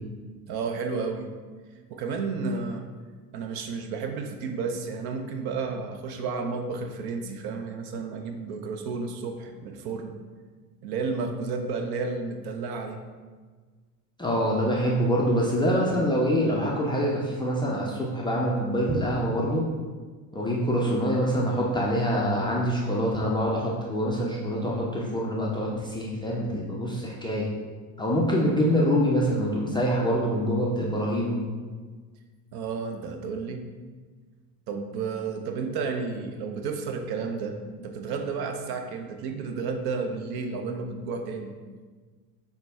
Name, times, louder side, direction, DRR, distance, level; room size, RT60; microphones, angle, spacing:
voice 1, 0.5-1.3 1.9-2.9 3.3-10.1 10.8-13.0 32.5-33.7 34.7-41.6, right 4 dB, 50° right, 5 dB, 0.6 m, -32 dB
voice 2, 14.2-19.7 20.3-27.5 28.0-31.4, equal, 10° left, -5 dB, 0.4 m, -25 dB
5.6 x 2.1 x 3.4 m, 1.4 s
hypercardioid pair, 85°, 48 cm